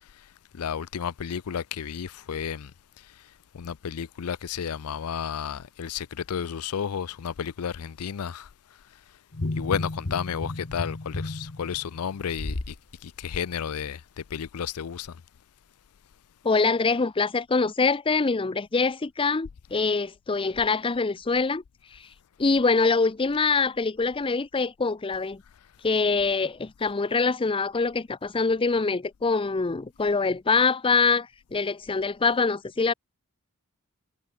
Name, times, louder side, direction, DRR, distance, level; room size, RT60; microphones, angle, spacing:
voice 1, 0.6-2.7 3.6-8.5 9.6-12.7 13.0-15.1, left 7 dB, 75° left, 0.5 m, -32 dB
sound 1, 9.3-12.8 13.2-13.4, left 2 dB, 50° left, 1.1 m, -33 dB
voice 2, 16.4-21.6 22.4-25.4 25.8-32.9, left 4 dB, 25° left, 0.5 m, -24 dB
head